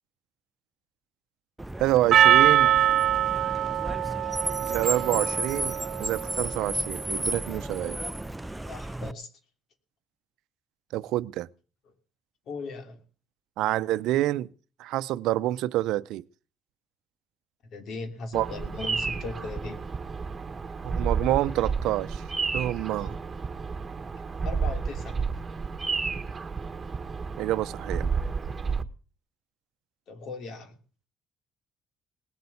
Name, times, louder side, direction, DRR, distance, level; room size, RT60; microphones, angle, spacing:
Car, 1.6-9.1, right 1 dB, 10° right, 0.6 m, -33 dB
voice 1, 1.8-2.7 4.6-8.0 10.9-11.5 13.6-14.5 14.8-16.2 18.3-18.5 20.8-22.2 22.5-23.2 27.4-28.1, right 15 dB, 80° right, 0.6 m, -27 dB
Percussion, 2.1-6.7, right 11 dB, 65° right, 1.0 m, -23 dB
voice 2, 8.7-9.3 12.5-13.0 17.7-19.8 23.0-23.2 24.4-25.3 30.1-30.8, left 3 dB, 70° left, 3.1 m, -38 dB
Bird vocalization bird call bird song, 18.3-28.8, right 5 dB, 30° right, 1.6 m, -31 dB
19.5 x 7.8 x 7.1 m
supercardioid pair, 70°, 0 cm